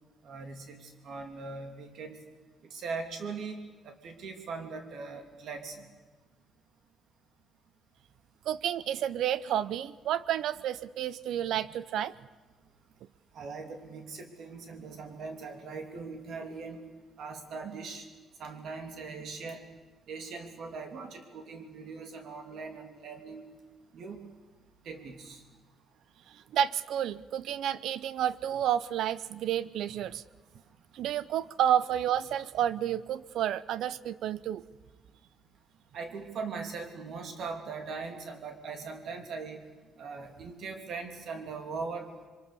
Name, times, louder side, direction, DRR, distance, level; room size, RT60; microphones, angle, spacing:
voice 1, 0.2-2.2 2.7-3.6 3.8-5.9 13.3-16.8 17.2-18.1 18.4-19.6 20.1-23.4 23.9-24.2 24.8-25.4 30.5-30.6 31.0-31.1 35.9-39.6 40.0-42.1, right 4 dB, 60° right, 5 dB, 3.0 m, -40 dB
voice 2, 8.5-12.1 26.3-30.2 30.9-34.6, right 10 dB, 75° right, 17 dB, 0.7 m, -30 dB
26.0 x 24.0 x 7.0 m, 1.2 s
cardioid pair, 170°, 0 cm